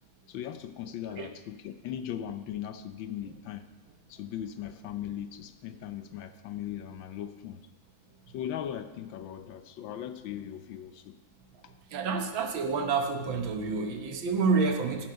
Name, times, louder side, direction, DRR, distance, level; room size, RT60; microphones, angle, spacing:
voice 1, 0.3-3.6 4.1-7.6 8.3-11.2, left 10 dB, 75° left, 10 dB, 1.3 m, -38 dB
voice 2, 11.9-15.1, right 4 dB, 70° right, 5 dB, 1.8 m, -28 dB
13.5 x 7.4 x 5.7 m, 1.2 s
omnidirectional pair, 2.2 m